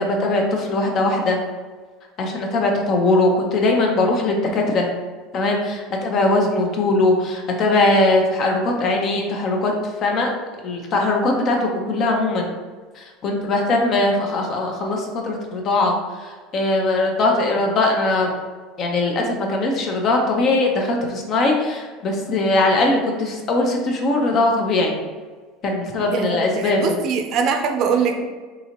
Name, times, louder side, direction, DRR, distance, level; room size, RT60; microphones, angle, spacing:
voice 1, 0.0-1.4 2.2-4.9 5.3-9.7 10.0-10.3 10.6-12.5 13.0-18.3 18.8-24.9 25.6-27.0, left 2 dB, 45° left, 1 dB, 0.7 m, -20 dB
voice 2, 26.1-28.2, right 5 dB, 55° right, 4 dB, 0.5 m, -22 dB
3.9 x 2.8 x 2.9 m, 1.4 s
supercardioid pair, 115°, 0 cm